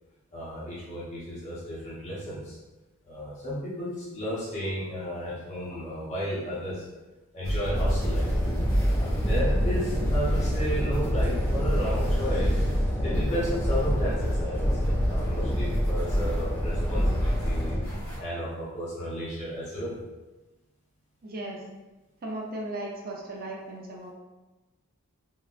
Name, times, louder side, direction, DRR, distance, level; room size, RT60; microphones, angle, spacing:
voice 1, 0.3-2.6 3.1-6.9 7.3-8.2 8.9-17.8 18.2-20.0, equal, 30° left, -8 dB, 0.7 m, -33 dB
sound 1, 7.4-18.2, equal, 60° left, 1.3 m, -31 dB
sound 2, 7.7-17.8, equal, 10° left, 0.3 m, -27 dB
voice 2, 21.2-21.6 22.2-24.1, right 1 dB, 40° right, -2 dB, 0.6 m, -36 dB
3.7 x 2.0 x 2.5 m, 1.1 s
head